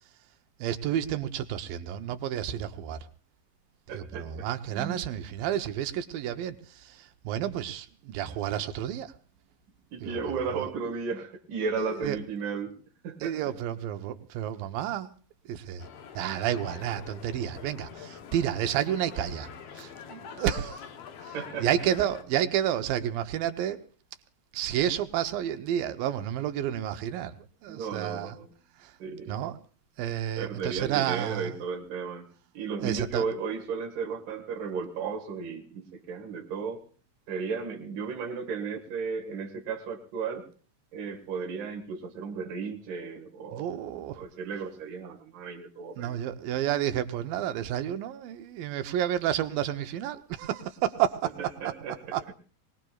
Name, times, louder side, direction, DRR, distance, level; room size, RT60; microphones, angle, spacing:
voice 1, 0.6-3.1 3.9-9.1 10.0-10.7 11.8-12.2 13.2-15.1 15.5-15.9 16.1-20.8 21.2-23.8 24.5-28.4 28.8-29.0 29.3-29.6 30.0-31.6 32.8-33.3 43.5-44.2 46.0-51.7 52.1-52.3, right 11 dB, 85° right, 8 dB, 2.6 m, -31 dB
voice 2, 3.9-5.0 9.9-13.3 21.3-21.7 27.7-28.5 29.0-29.4 30.4-32.2 32.5-36.8 37.3-40.5 40.9-43.7 44.2-46.2 51.4-52.3, right 5 dB, 70° right, 2 dB, 3.2 m, -34 dB
sound 1, 15.8-22.2, left 7 dB, 70° left, 1.5 m, -45 dB
22.5 x 20.0 x 2.4 m, 0.40 s
omnidirectional pair, 3.9 m